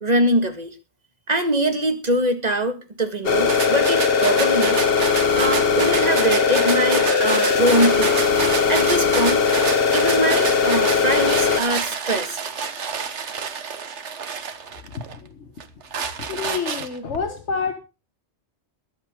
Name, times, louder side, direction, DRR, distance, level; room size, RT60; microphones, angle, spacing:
voice 1, 0.0-0.7 1.3-4.8 5.3-8.2 8.7-9.4 9.9-12.4, right 1 dB, 35° right, 6 dB, 2.0 m, -23 dB
sound 1, 3.2-11.6, left 5 dB, 55° left, 1.3 m, -19 dB
sound 2, 3.5-15.2 15.6-17.2, right 6 dB, 80° right, 1.5 m, -29 dB
voice 2, 14.8-15.5 16.2-17.7, left 5 dB, 80° left, 6 dB, 1.6 m, -29 dB
22.0 x 8.4 x 3.8 m, 0.31 s
omnidirectional pair, 1.2 m